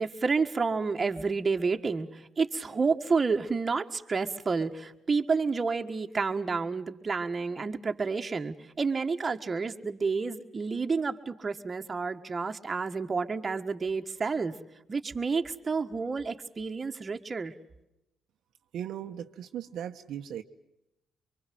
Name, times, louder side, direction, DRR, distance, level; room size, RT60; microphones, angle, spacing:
voice 1, 0.0-14.5 14.9-17.5, right 4 dB, 30° right, 6 dB, 1.6 m, -30 dB
voice 2, 18.7-20.4, right 10 dB, 75° right, 6 dB, 1.0 m, -37 dB
24.0 x 24.0 x 7.7 m, 0.88 s
cardioid pair, 90°, 0 cm